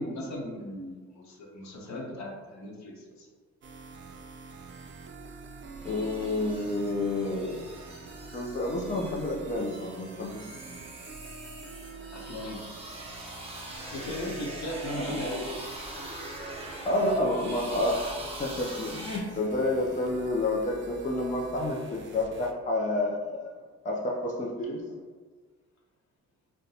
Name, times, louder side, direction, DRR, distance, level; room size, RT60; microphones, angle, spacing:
voice 1, 0.0-3.3 5.8-5.9 12.1-12.6 13.9-15.5, left 1 dB, 65° left, -1 dB, 0.9 m, -37 dB
sound 1, 3.6-22.5, right 3 dB, 40° right, 0.4 m, -46 dB
voice 2, 5.8-7.6 8.3-10.8 14.9-15.1 16.8-23.4 23.8-24.8, left 2 dB, 25° left, -1 dB, 0.5 m, -29 dB
sound 2, 5.8-19.2, right 1 dB, 20° right, 0.8 m, -43 dB
3.8 x 2.2 x 2.8 m, 1.4 s
cardioid pair, 90°, 30 cm